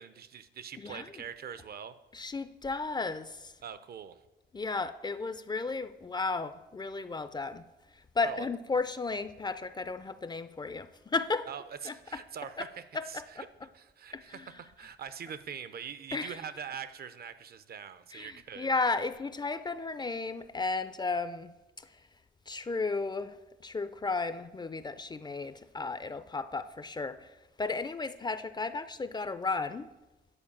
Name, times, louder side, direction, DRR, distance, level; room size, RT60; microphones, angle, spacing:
voice 1, 0.0-2.0 3.6-4.2 8.2-8.5 11.5-13.5 13.7-18.7, right 7 dB, 50° right, 0.6 m, -43 dB
voice 2, 0.8-1.2 2.1-3.5 4.5-7.7 7.9-11.5 11.8-12.2 12.6-12.7 12.9-13.4 14.1-14.5 16.1-16.4 18.1-21.5 21.8-22.0 22.5-29.9, left 3 dB, 20° left, 0.4 m, -34 dB
9.8 x 4.6 x 7.1 m
cardioid pair, 90°, 20 cm